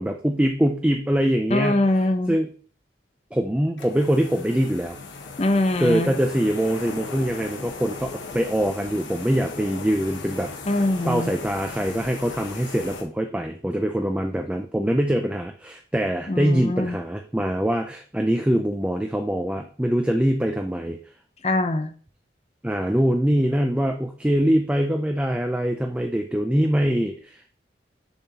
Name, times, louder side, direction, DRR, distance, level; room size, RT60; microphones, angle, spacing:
voice 1, 0.0-1.8 2.3-2.5 3.3-5.0 5.8-10.5 11.0-21.0 22.6-27.6, equal, 5° right, 4 dB, 0.4 m, -23 dB
voice 2, 1.5-2.4 5.4-6.1 10.7-11.3 16.3-17.0 21.4-21.9, left 1 dB, 35° left, 8 dB, 0.6 m, -23 dB
sound 1, 3.8-13.0, left 4 dB, 85° left, 1.2 m, -38 dB
7.0 x 5.7 x 2.9 m, 0.42 s
head